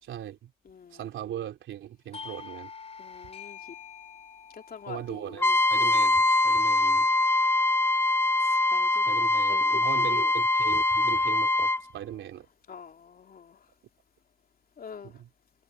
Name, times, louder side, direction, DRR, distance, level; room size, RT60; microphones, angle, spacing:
voice 1, 0.0-0.5 0.9-2.7 4.9-7.1 8.9-12.5 15.0-15.3, right 11 dB, 75° right, 3.5 m, -39 dB
Doorbell, 2.1-7.4, left 6 dB, 30° left, 4.0 m, -47 dB
voice 2, 3.0-3.6 4.7-5.0 8.5-9.9 10.2-10.3 12.7-13.6 14.8-15.1, left 6 dB, 50° left, 2.9 m, -44 dB
Trumpet, 5.4-11.8, left 2 dB, 10° left, 0.4 m, -23 dB
cardioid pair, 90°, 20 cm